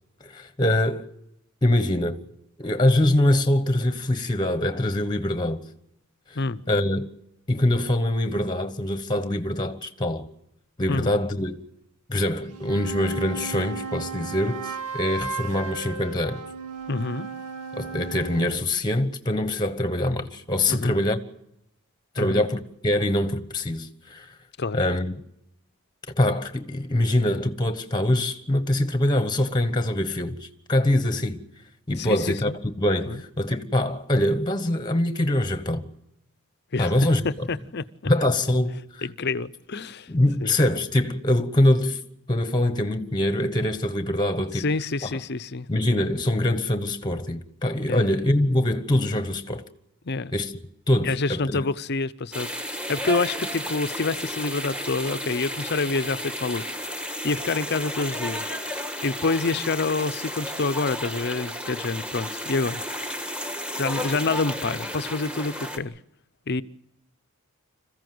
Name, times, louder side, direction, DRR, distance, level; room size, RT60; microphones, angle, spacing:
voice 1, 0.2-1.1 1.6-2.2 2.6-5.6 6.7-7.1 7.5-10.3 10.8-11.6 12.1-16.4 17.7-21.2 22.1-24.3 24.7-25.1 26.2-31.4 31.9-32.5 32.8-35.8 36.8-37.5 38.0-38.8 40.1-42.0 42.3-44.6 45.7-49.6 50.3-50.5 50.9-51.7, left 1 dB, 20° left, 1.2 m, -24 dB
sound 1, 12.4-18.6, right 5 dB, 85° right, 2.3 m, -35 dB
voice 2, 16.9-17.3 20.7-21.0 22.2-22.4 24.6-24.8 32.0-32.6 33.1-33.2 36.7-36.9 37.2-38.1 39.0-40.1 40.4-40.5 44.5-45.7 47.9-48.0 50.0-50.3 51.0-52.5 52.9-56.6 56.9-58.5 59.0-62.8 63.8-66.0 66.5-66.6, left 3 dB, 50° left, 0.7 m, -27 dB
sound 2, 52.3-65.8, equal, 5° right, 1.6 m, -32 dB
26.5 x 15.0 x 7.8 m
head